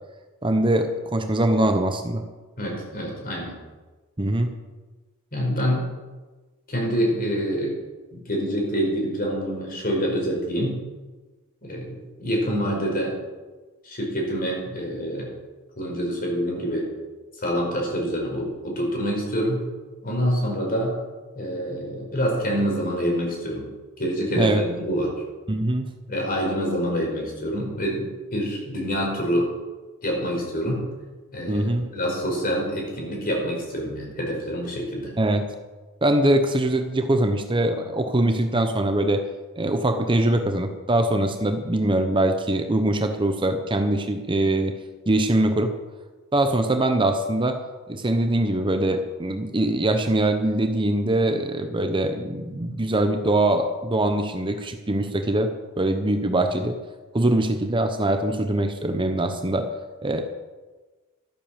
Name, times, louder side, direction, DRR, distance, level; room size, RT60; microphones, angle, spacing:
voice 1, 0.4-2.2 4.2-4.5 24.3-24.6 25.5-25.9 31.5-31.9 35.2-35.5 36.0-39.3 39.6-44.7 45.1-45.7 46.3-47.6 47.9-56.8 57.1-59.7 60.0-60.2, right 1 dB, 25° right, 6 dB, 0.9 m, -22 dB
voice 2, 2.6-3.5 5.3-5.9 6.7-7.8 8.1-10.8 11.6-13.1 13.8-15.3 15.8-16.9 17.4-19.6 20.0-20.9 21.3-23.7 24.0-25.1 26.1-29.5 30.0-30.8 31.3-35.1, equal, 45° left, -1 dB, 5.1 m, -26 dB
13.0 x 10.0 x 7.2 m, 1.3 s
head